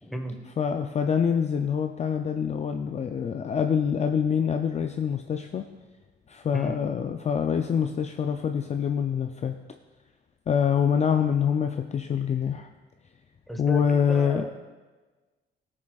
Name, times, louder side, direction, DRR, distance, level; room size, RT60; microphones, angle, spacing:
voice 1, 0.0-0.4 6.5-6.8 13.5-14.5, equal, ahead, 4 dB, 1.1 m, -35 dB
voice 2, 0.6-5.7 6.3-9.5 10.5-12.7 13.6-14.5, left 7 dB, 35° left, 5 dB, 0.4 m, -25 dB
15.5 x 6.2 x 2.4 m, 1.3 s
cardioid pair, 90°, 20 cm